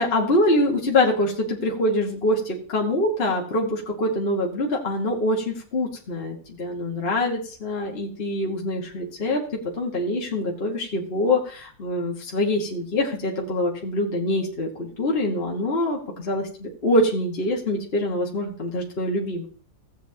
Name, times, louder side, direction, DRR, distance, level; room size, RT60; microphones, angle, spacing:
voice 1, 0.0-9.4 9.8-19.5, left 1 dB, 30° left, -1 dB, 1.6 m, -24 dB
16.0 x 8.2 x 2.8 m, 0.41 s
omnidirectional pair, 2.2 m